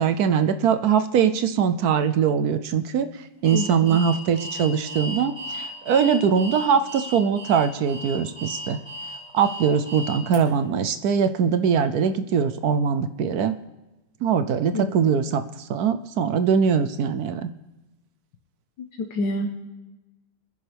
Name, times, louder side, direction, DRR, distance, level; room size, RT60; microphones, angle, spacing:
voice 1, 0.0-3.1 3.4-8.8 9.3-13.5 14.2-17.5, right 7 dB, 65° right, 10 dB, 1.0 m, -22 dB
Alarm, 3.4-10.4, equal, 25° left, 5.7 m, -35 dB
voice 2, 3.5-4.0 14.7-14.8 19.0-19.6, left 1 dB, 75° left, 2 dB, 1.8 m, -28 dB
28.0 x 10.5 x 3.4 m, 1.1 s
omnidirectional pair, 2.0 m